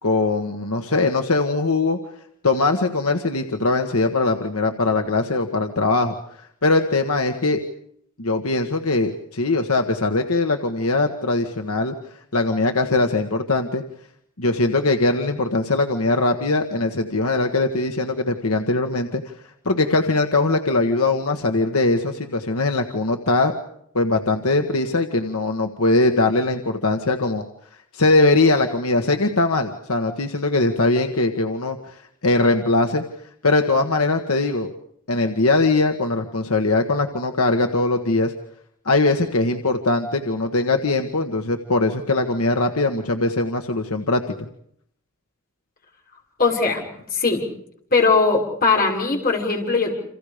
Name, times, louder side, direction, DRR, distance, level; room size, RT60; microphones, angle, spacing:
voice 1, 0.0-2.0 2.4-6.1 6.6-7.6 8.2-11.9 12.3-13.8 14.4-19.2 19.6-23.5 23.9-27.4 27.9-31.9 32.2-33.0 33.4-34.7 35.1-38.3 38.8-44.3, left 2 dB, 80° left, 4 dB, 1.5 m, -21 dB
voice 2, 46.4-46.9 47.1-47.4 47.9-50.0, left 4 dB, 45° left, 1 dB, 6.2 m, -19 dB
29.5 x 27.5 x 5.1 m, 0.70 s
head